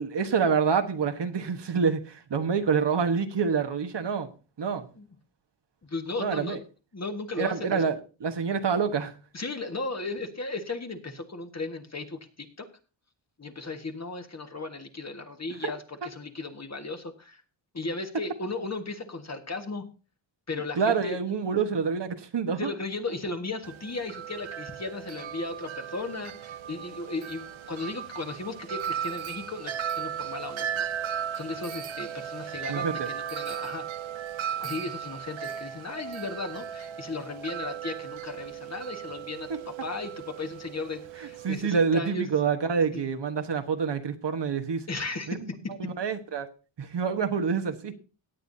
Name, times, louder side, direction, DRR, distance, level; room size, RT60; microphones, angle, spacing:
voice 1, 0.0-4.3 4.6-4.9 6.2-6.6 7.4-9.1 15.6-15.7 20.7-22.7 32.7-33.1 39.5-39.6 41.2-44.8 45.3-45.5 45.8-46.5 46.8-47.9, right 6 dB, 60° right, 7 dB, 1.3 m, -27 dB
voice 2, 5.8-6.6 6.9-7.8 9.3-12.7 13.4-17.4 17.7-19.8 20.5-21.2 22.6-30.9 31.3-33.8 34.6-42.3 42.9-43.0 44.9-45.7, left 3 dB, 35° left, 6 dB, 1.6 m, -36 dB
Wind chime, 23.6-41.5, right 9 dB, 75° right, 0.7 m, -36 dB
17.5 x 9.0 x 2.7 m, 0.33 s
wide cardioid pair, 90°, 47 cm